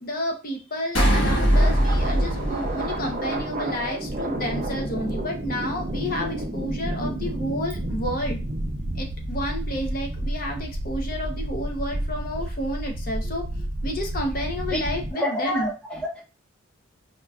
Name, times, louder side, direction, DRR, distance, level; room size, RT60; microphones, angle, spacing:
voice 1, 0.0-8.4 9.0-13.5 13.8-15.7, equal, 45° left, 0.7 m, -30 dB
sound 1, 0.9-3.5, equal, 70° left, 1.3 m, -21 dB
sound 2, 1.5-15.1, right 1 dB, 40° right, 0.5 m, -30 dB
voice 2, 15.1-16.2, left 1 dB, 5° left, 0.6 m, -28 dB
4.6 x 2.5 x 2.3 m
head